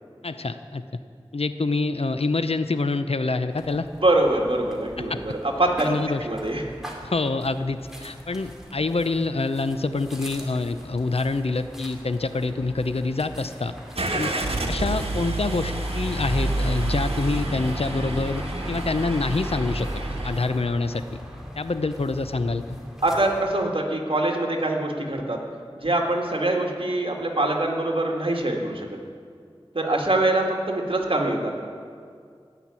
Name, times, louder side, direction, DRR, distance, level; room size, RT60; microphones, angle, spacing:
voice 1, 0.2-0.8 1.3-3.9 5.0-5.2 5.8-6.3 7.0-13.7 14.1-14.3 14.7-21.0 21.6-22.8, left 3 dB, 80° left, 10 dB, 0.7 m, -26 dB
sound 1, 3.5-23.4, equal, 5° right, 2.5 m, -40 dB
voice 2, 4.0-5.3 5.6-5.9 6.2-6.6 23.0-25.4 25.8-28.9 29.7-31.7, right 2 dB, 60° right, 0 dB, 2.1 m, -24 dB
Car / Engine starting, 13.9-20.4, right 2 dB, 80° right, 1.3 m, -28 dB
17.5 x 6.0 x 9.6 m, 2.2 s
wide cardioid pair, 50°, 10 cm